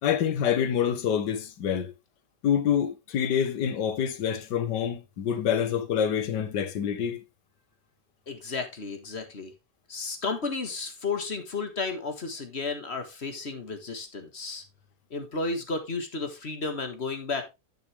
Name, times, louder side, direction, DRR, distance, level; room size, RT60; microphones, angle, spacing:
voice 1, 0.0-1.9 2.4-7.2, left 8 dB, 85° left, 1.7 m, -26 dB
voice 2, 8.3-9.5 9.9-14.6 15.1-17.5, left 3 dB, 40° left, 1.6 m, -33 dB
10.5 x 6.5 x 3.3 m
omnidirectional pair, 1.8 m